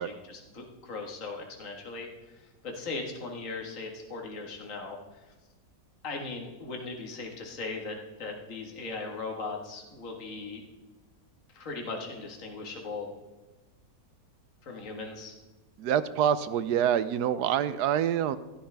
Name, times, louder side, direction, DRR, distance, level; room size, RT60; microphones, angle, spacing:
voice 1, 0.0-5.2 6.0-10.6 11.5-13.1 14.6-15.3, left 3 dB, 45° left, 1 dB, 2.0 m, -38 dB
voice 2, 15.8-18.4, right 9 dB, 70° right, 14 dB, 1.1 m, -26 dB
15.5 x 13.0 x 3.5 m, 1.1 s
omnidirectional pair, 1.9 m